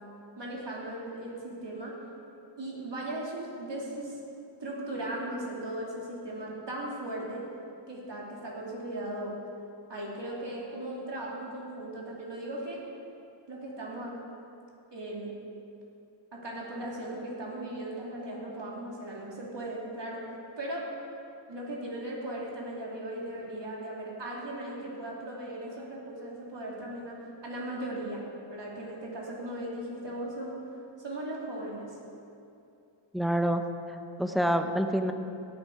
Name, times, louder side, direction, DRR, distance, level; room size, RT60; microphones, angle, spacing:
voice 1, 0.4-2.0 2.6-4.2 4.6-7.5 7.9-9.4 9.9-12.8 13.5-14.2 14.9-15.4 16.3-20.2 20.6-20.9 21.5-28.2 28.5-30.6 31.0-32.0, right 1 dB, 55° right, -4 dB, 3.1 m, -37 dB
voice 2, 33.1-33.6 33.9-35.1, right 1 dB, ahead, 6 dB, 0.9 m, -27 dB
17.5 x 8.8 x 5.0 m, 2.7 s
cardioid pair, 65°, 49 cm